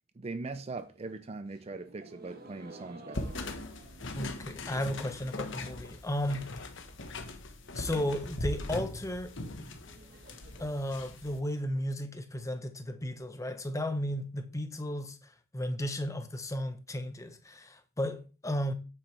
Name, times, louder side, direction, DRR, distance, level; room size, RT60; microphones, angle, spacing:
voice 1, 0.2-3.3, right 3 dB, 30° right, 0.4 m, -40 dB
sound 1, 0.7-5.7 6.0-6.5 6.8-6.9 7.2-7.3 7.6-11.6, right 2 dB, 45° right, 1.4 m, -55 dB
sound 2, 3.1-11.4, left 2 dB, 60° left, 1.3 m, -40 dB
voice 2, 4.2-6.5 7.7-9.3 10.6-18.7, left 1 dB, 15° left, 0.9 m, -34 dB
9.2 x 8.3 x 3.4 m
head